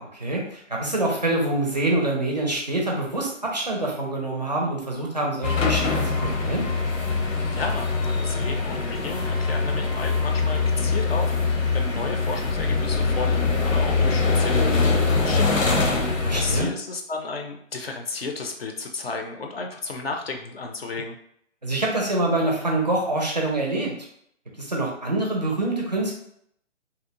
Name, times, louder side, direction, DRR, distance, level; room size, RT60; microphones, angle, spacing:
voice 1, 0.0-6.6 16.2-16.7 21.6-23.9 24.6-26.1, right 2 dB, 35° right, -1 dB, 0.4 m, -25 dB
sound 1, 5.4-16.6, left 4 dB, 85° left, 0.7 m, -23 dB
voice 2, 7.5-15.7 16.3-21.2, left 3 dB, 50° left, 3 dB, 0.5 m, -33 dB
2.6 x 2.0 x 2.7 m, 0.69 s
figure-of-eight pair, 145°, 38 cm